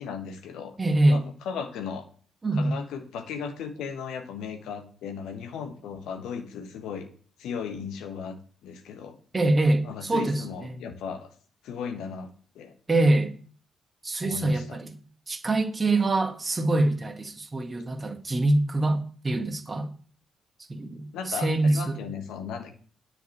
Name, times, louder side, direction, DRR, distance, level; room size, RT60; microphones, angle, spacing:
voice 1, 0.0-0.8 1.1-2.0 2.5-7.1 7.4-8.3 8.6-9.2 9.8-11.3 11.6-12.7 14.2-14.8 21.1-22.7, left 6 dB, 60° left, 1.4 m, -36 dB
voice 2, 0.8-1.2 2.4-2.7 9.3-10.8 12.9-13.3 14.0-15.0 15.3-19.9 20.7-22.0, right 2 dB, 25° right, 1.8 m, -24 dB
10.0 x 5.2 x 7.3 m
figure-of-eight pair, 40°, 0 cm